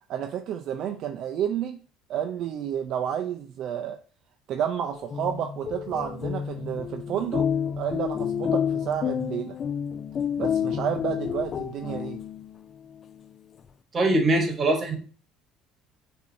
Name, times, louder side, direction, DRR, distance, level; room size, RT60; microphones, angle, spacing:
voice 1, 0.1-1.8 2.1-4.0 4.5-7.5 7.8-9.6 10.4-12.2, right 9 dB, 60° right, 5 dB, 0.4 m, -30 dB
sound 1, 4.9-12.6, left 8 dB, 40° left, 0.3 m, -29 dB
voice 2, 13.9-15.0, right 2 dB, 35° right, 5 dB, 1.1 m, -22 dB
6.4 x 2.6 x 2.6 m, 0.40 s
supercardioid pair, 105°, 0 cm